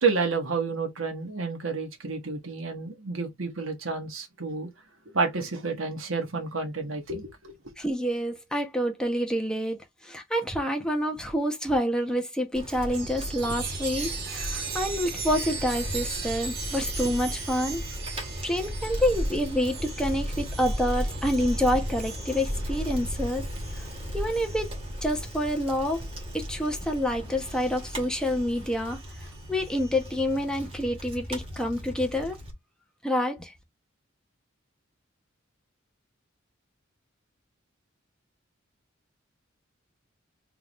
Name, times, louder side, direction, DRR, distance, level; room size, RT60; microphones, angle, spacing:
voice 1, 0.0-4.7 5.1-7.5, right 4 dB, 90° right, 1.4 m, -30 dB
voice 2, 7.8-9.8 10.0-17.8 18.4-23.4 23.8-23.9 24.1-24.7 25.0-26.0 26.3-29.0 29.5-32.4 33.0-33.5, equal, 5° left, 1.0 m, -27 dB
Bicycle, 12.5-32.5, equal, 30° right, 1.8 m, -35 dB
Chime, 12.9-26.9 27.4-30.2, right 5 dB, 55° right, 1.6 m, -40 dB
3.8 x 3.5 x 3.1 m
head